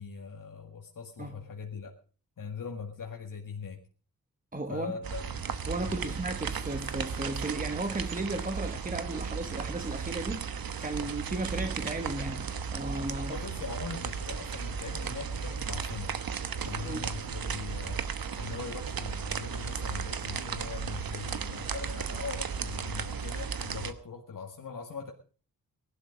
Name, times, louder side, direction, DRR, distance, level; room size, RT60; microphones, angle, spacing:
voice 1, 0.0-1.9 2.4-3.8 4.7-5.2 5.8-6.2 11.0-11.2 13.3-16.2 16.6-18.1 18.4-25.1, left 5 dB, 65° left, 2.0 m, -41 dB
voice 2, 4.5-5.0 5.7-13.4 16.8-17.1, right 2 dB, 25° right, 1.3 m, -35 dB
sound 1, 5.0-23.9, right 6 dB, 85° right, 1.2 m, -35 dB
19.0 x 11.5 x 5.2 m
wide cardioid pair, 125°, 35 cm